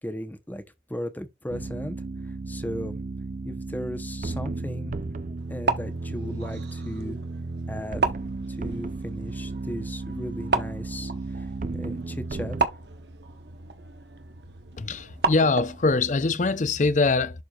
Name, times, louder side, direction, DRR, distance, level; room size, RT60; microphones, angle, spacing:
voice 1, 0.0-0.6 0.9-1.9 2.5-3.0 3.4-5.0 5.5-7.2 7.7-8.0 8.5-11.5 11.7-12.6, equal, 10° left, 0.8 m, -36 dB
sound 1, 1.5-12.7, right 3 dB, 45° right, 0.5 m, -34 dB
sound 2, 5.4-15.9, right 4 dB, 65° right, 1.0 m, -33 dB
voice 2, 14.8-17.4, left 3 dB, 40° left, 0.5 m, -23 dB
11.5 x 4.5 x 2.4 m
head